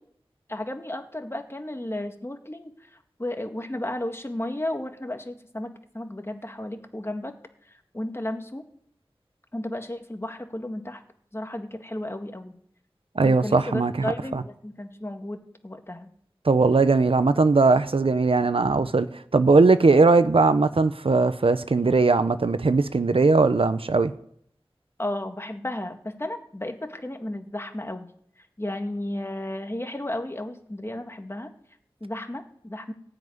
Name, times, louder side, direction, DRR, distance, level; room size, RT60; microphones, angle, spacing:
voice 1, 0.5-2.7 3.2-7.3 7.9-8.6 9.5-11.0 11.3-12.5 13.2-16.1 25.0-28.1 28.6-31.5 32.0-32.9, left 1 dB, 25° left, 6 dB, 1.9 m, -33 dB
voice 2, 13.2-14.4 16.4-19.1 19.3-24.1, right 3 dB, 75° right, 12 dB, 0.8 m, -19 dB
15.5 x 5.9 x 9.5 m, 0.68 s
wide cardioid pair, 45°, 10 cm